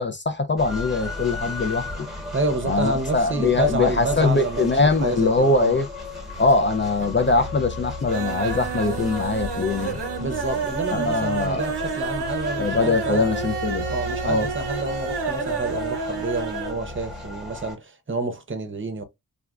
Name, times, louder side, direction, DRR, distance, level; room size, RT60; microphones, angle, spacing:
voice 1, 0.0-1.9 2.7-5.9 6.4-10.0 10.9-11.7 12.6-13.9 14.2-14.5, left 3 dB, 30° left, 0.4 m, -22 dB
sound 1, 0.6-17.8, left 2 dB, ahead, 1.1 m, -35 dB
voice 2, 2.3-5.8 10.2-13.2 13.9-19.0, right 2 dB, 30° right, 0.7 m, -28 dB
sound 2, 6.0-6.7 6.9-7.5 7.8-16.8 17.1-17.2 17.5-17.6, right 4 dB, 75° right, 0.7 m, -30 dB
3.4 x 2.3 x 2.3 m
wide cardioid pair, 65°, 41 cm